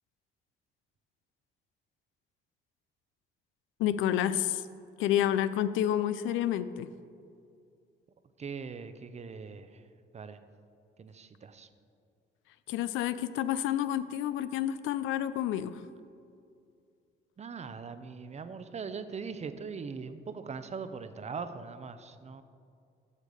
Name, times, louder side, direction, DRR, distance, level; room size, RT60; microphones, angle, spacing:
voice 1, 3.8-4.6 5.0-6.9 12.7-15.8, left 11 dB, 90° left, 14 dB, 0.4 m, -29 dB
voice 2, 8.4-9.8 10.1-10.4 11.0-11.7 17.4-22.4, right 5 dB, 35° right, 11 dB, 0.6 m, -41 dB
8.1 x 6.4 x 5.4 m, 2.4 s
cardioid pair, 90°, 20 cm